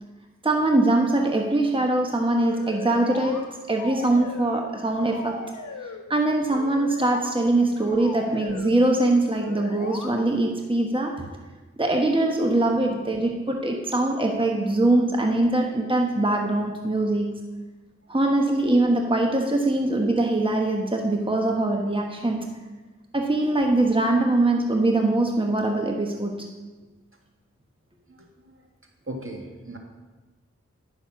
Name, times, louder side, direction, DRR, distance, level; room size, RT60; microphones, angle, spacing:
voice 1, 0.4-5.4 6.1-11.3 11.8-17.4 18.1-22.6 23.1-26.5, right 2 dB, 15° right, 2 dB, 1.2 m, -22 dB
sound 1, 2.4-3.4 3.8-4.7 5.0-6.0 6.5-7.3 7.8-8.8 9.3-10.1, left 4 dB, 75° left, 1.1 m, -38 dB
voice 2, 8.2-8.5 12.9-13.0 28.1-28.7 29.0-29.8, right 1 dB, 45° right, 2 dB, 1.7 m, -39 dB
10.0 x 6.4 x 6.2 m, 1.3 s
cardioid pair, 40°, 30 cm